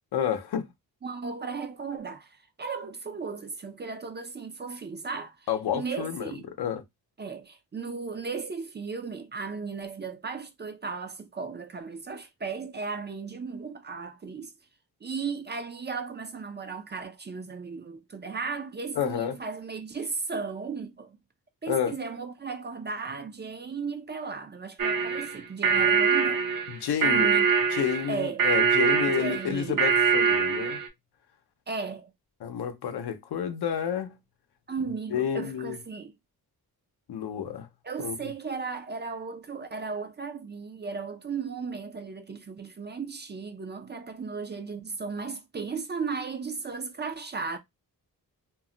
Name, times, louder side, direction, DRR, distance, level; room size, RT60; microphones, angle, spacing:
voice 1, 0.1-0.7 5.5-6.3 6.6-6.8 19.0-19.4 21.7-21.9 26.7-27.3 27.7-30.8 32.4-34.2 35.1-35.8 37.1-37.7 38.0-38.2, left 8 dB, 85° left, 0.6 m, -30 dB
voice 2, 1.0-5.5 5.7-6.5 7.2-14.5 15.0-21.2 21.6-26.4 27.0-27.5 28.1-28.5 29.1-29.8 31.7-32.1 34.7-36.1 37.8-47.6, right 5 dB, 30° right, 0.4 m, -35 dB
sound 1, 24.8-30.9, right 6 dB, 65° right, 0.7 m, -24 dB
2.3 x 2.0 x 3.7 m
wide cardioid pair, 135°, 38 cm